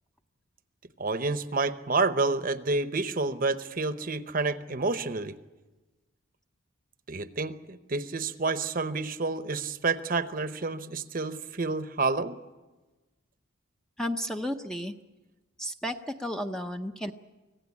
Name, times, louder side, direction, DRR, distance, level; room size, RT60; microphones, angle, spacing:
voice 1, 1.0-5.3 7.1-12.4, right 3 dB, 40° right, 11 dB, 0.8 m, -29 dB
voice 2, 14.0-14.9 15.6-15.9 16.2-17.1, equal, 5° left, 5 dB, 0.6 m, -32 dB
25.0 x 16.5 x 8.5 m, 1.2 s
head